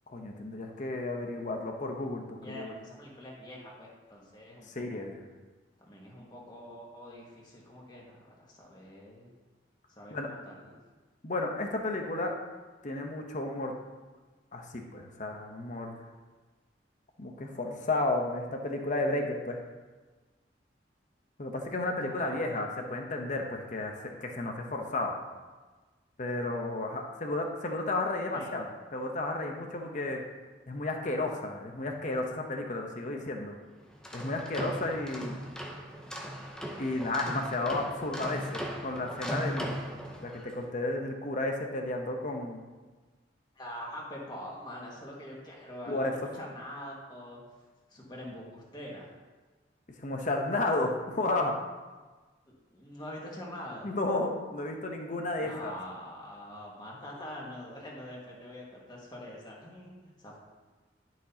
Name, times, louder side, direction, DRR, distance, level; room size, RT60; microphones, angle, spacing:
voice 1, 0.1-2.7 4.7-5.2 10.1-10.3 11.2-12.3 12.8-13.7 14.5-16.0 17.2-19.6 21.4-25.1 26.2-28.7 28.9-30.2 30.7-33.5 34.1-35.4 36.8-39.7 40.2-42.6 45.9-46.1 50.0-51.5 53.8-55.7, left 2 dB, 45° left, 2 dB, 0.8 m, -32 dB
voice 2, 2.4-4.8 5.8-9.3 10.0-10.8 22.1-22.6 28.3-28.5 43.6-47.4 47.9-49.1 52.7-53.9 55.4-60.4, left 1 dB, 25° left, -4 dB, 1.8 m, -44 dB
sound 1, 33.9-40.6, equal, 5° left, 0.8 m, -38 dB
11.0 x 6.0 x 2.8 m, 1.3 s
head